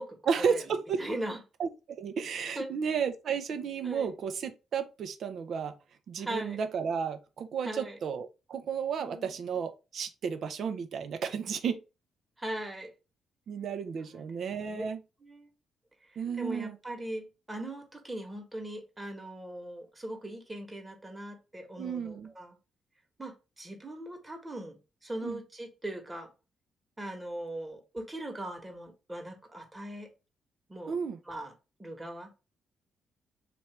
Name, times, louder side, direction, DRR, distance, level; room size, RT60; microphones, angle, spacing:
voice 1, 0.3-1.0 1.6-5.8 6.1-11.8 13.5-15.0 16.2-16.8 21.8-22.3 25.2-25.4 30.9-31.2, right 6 dB, 60° right, 0.5 m, -33 dB
voice 2, 1.0-1.4 2.6-2.7 3.8-4.1 6.2-6.6 7.6-8.0 9.0-9.3 12.4-12.9 14.0-14.3 14.6-14.8 15.2-15.5 16.4-22.6 23.2-24.8 25.0-26.3 27.0-30.1 30.7-30.9 31.2-31.5 31.8-32.3, right 1 dB, 20° right, 1.2 m, -40 dB
3.1 x 2.5 x 3.2 m
hypercardioid pair, 45°, 0 cm